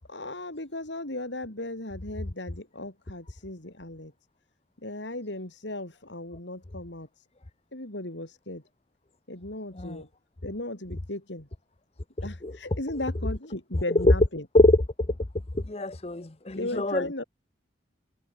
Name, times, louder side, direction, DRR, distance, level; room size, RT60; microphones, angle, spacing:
voice 1, 0.1-4.1 4.8-7.1 7.7-8.6 9.3-10.1 10.4-11.5 12.2-14.5 16.6-17.2, left 1 dB, 80° left, 4.2 m, -36 dB
voice 2, 15.5-17.2, left 2 dB, 35° left, 0.8 m, -23 dB
head